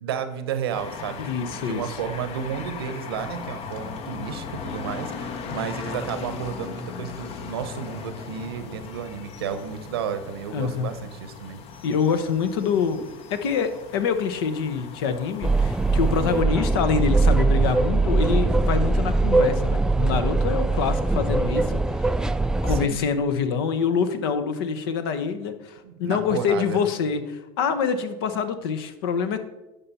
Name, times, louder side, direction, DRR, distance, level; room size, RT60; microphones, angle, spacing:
voice 1, 0.0-11.6 22.7-23.0 25.8-26.8, right 7 dB, 90° right, 10 dB, 0.9 m, -32 dB
sound 1, 0.7-16.4, left 6 dB, 50° left, 0.9 m, -38 dB
voice 2, 1.2-2.0 10.5-10.9 11.8-13.0 13.3-22.1 22.6-29.4, left 6 dB, 80° left, 9 dB, 0.9 m, -26 dB
sound 2, 15.4-22.9, right 3 dB, 5° right, 0.3 m, -21 dB
10.0 x 5.6 x 4.2 m, 1.0 s
hypercardioid pair, 85°, 12 cm